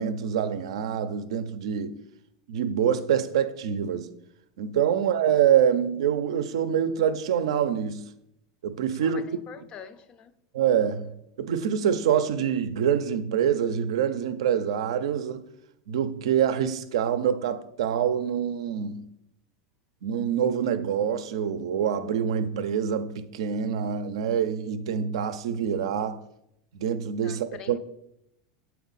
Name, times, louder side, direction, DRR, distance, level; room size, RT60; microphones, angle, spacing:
voice 1, 0.0-2.0 2.5-4.1 4.6-8.0 8.6-9.2 10.5-11.1 11.4-15.4 15.9-19.1 20.0-26.2 26.7-27.8, right 8 dB, 85° right, 0.5 m, -25 dB
voice 2, 9.0-10.3 27.2-27.8, left 7 dB, 35° left, 0.4 m, -45 dB
7.1 x 4.4 x 4.0 m
supercardioid pair, 125°, 3 cm